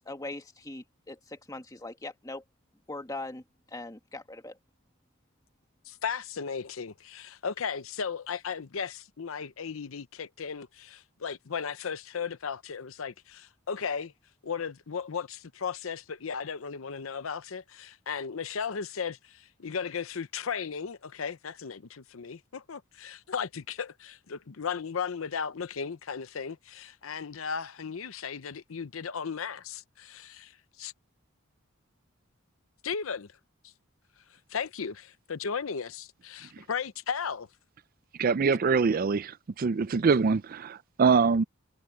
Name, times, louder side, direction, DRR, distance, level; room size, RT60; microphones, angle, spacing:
voice 1, 0.0-2.4 2.9-4.6, left 2 dB, 15° left, 1.9 m, -41 dB
voice 2, 5.9-14.1 14.4-30.9 32.8-33.3 34.5-37.5, left 6 dB, 70° left, 0.7 m, -36 dB
voice 3, 38.2-41.4, right 5 dB, 45° right, 0.4 m, -24 dB
head